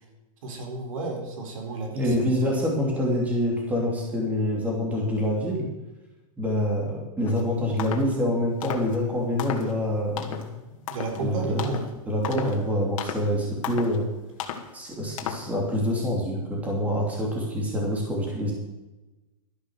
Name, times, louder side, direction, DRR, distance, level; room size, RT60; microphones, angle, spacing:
voice 1, 0.4-2.3 10.9-11.9 12.3-12.5, right 3 dB, 65° right, 3 dB, 4.1 m, -32 dB
voice 2, 1.9-5.7 6.4-10.6 11.1-11.6 12.1-14.1 14.7-18.5, left 1 dB, 10° right, -2 dB, 2.9 m, -26 dB
sound 1, 7.2-7.4 7.8-8.1 8.6-9.0 9.4-9.8 10.2-10.5 10.9-11.2 11.6-11.9 12.2-12.6 13.0-13.3 13.6-14.0 14.4-14.7 15.2-15.5, left 8 dB, 60° left, 2.2 m, -34 dB
13.0 x 10.5 x 6.5 m, 1.1 s
supercardioid pair, 160°, 18 cm